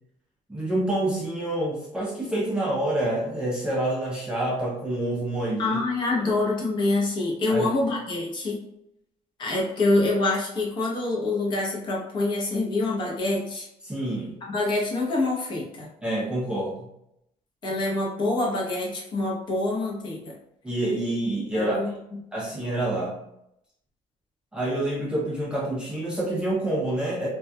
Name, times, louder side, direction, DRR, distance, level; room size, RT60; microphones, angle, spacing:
voice 1, 0.5-5.8 6.2-6.3 7.5-7.7 13.8-14.3 16.0-16.9 20.6-21.9 22.3-23.2 24.5-27.3, right 1 dB, 10° right, -5 dB, 0.4 m, -27 dB
voice 2, 5.6-8.6 9.4-13.7 14.5-15.9 17.6-20.3 21.5-21.9, left 2 dB, 40° left, -2 dB, 0.7 m, -26 dB
2.3 x 2.2 x 2.6 m, 0.79 s
cardioid pair, 180°, 13 cm